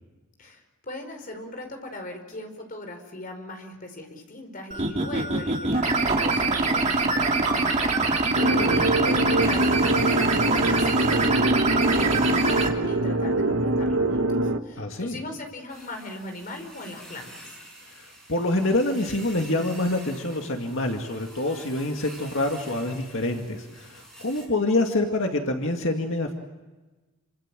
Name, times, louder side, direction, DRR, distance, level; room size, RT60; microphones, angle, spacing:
voice 1, 0.4-17.5, left 1 dB, 40° left, 4 dB, 4.9 m, -39 dB
sound 1, 4.7-12.7, right 3 dB, 30° right, 2.7 m, -24 dB
sound 2, 8.3-14.6, right 1 dB, 75° right, 1.8 m, -24 dB
voice 2, 8.4-8.8 14.8-15.2 17.9-26.3, left 2 dB, 60° left, 3 dB, 2.2 m, -26 dB
sound 3, 15.7-24.4, right 1 dB, 5° left, 7.1 m, -47 dB
28.0 x 25.5 x 7.6 m, 1.2 s
head